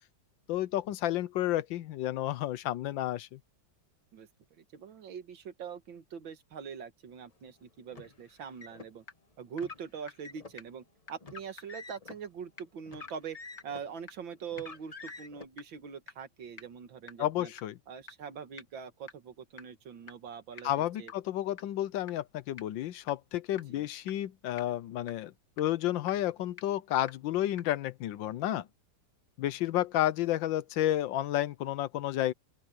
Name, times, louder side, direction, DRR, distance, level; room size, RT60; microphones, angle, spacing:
voice 1, 0.5-3.4 17.2-17.8 20.6-28.7 29.4-32.3, left 13 dB, 75° left, 1.4 m, -31 dB
voice 2, 4.1-9.0 9.4-13.4 13.6-17.5 17.9-21.1 23.7-23.9, right 7 dB, 75° right, 2.3 m, -43 dB
Car, 7.9-8.9 9.5-10.6 11.2-12.2 12.8-13.9 14.5-15.4, left 4 dB, 25° left, 0.9 m, -47 dB
sound 1, 9.1-9.2 9.6-9.7 10.1-10.2 10.6-10.7 11.1-11.2 11.6-11.7 12.1-12.2 12.6-12.7 13.1-13.2 13.6-13.7 14.1-14.2 14.6-14.7 15.1-15.2 15.6-15.7 16.1-16.2 16.6-16.7 17.1-17.2 17.6-17.7 18.1-18.2 18.6-18.7 19.1-19.2 19.6-19.7 20.1-20.2 20.6-20.7 21.1-21.2 21.6-21.7 22.1-22.2 22.6-22.7 23.1-23.2 23.6-23.7 24.1-24.2 24.6-24.7 25.1-25.2 25.6-25.7 26.1-26.2 26.6-26.7 27.1-27.2 27.6-27.7, left 5 dB, 40° left, 0.6 m, -46 dB
open air
omnidirectional pair, 2.1 m